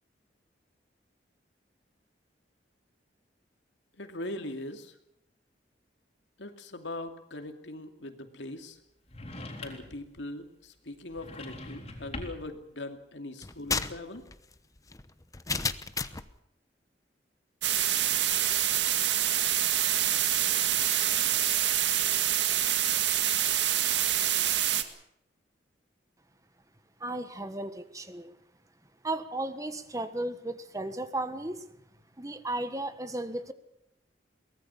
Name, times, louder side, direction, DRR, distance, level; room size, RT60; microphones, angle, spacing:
voice 1, 4.0-5.0 6.4-8.8 9.6-14.2, left 1 dB, 85° left, 6 dB, 2.6 m, -40 dB
sound 1, 9.1-10.0 11.1-12.5, left 2 dB, 35° left, 3.9 m, -42 dB
sound 2, 13.4-16.3, left 4 dB, 20° left, 0.9 m, -33 dB
sound 3, 17.6-24.8, right 11 dB, 80° right, 1.9 m, -26 dB
voice 2, 27.0-28.3 29.0-31.6 32.2-33.5, right 2 dB, 20° right, 10 dB, 1.5 m, -35 dB
23.0 x 18.5 x 7.2 m, 0.79 s
head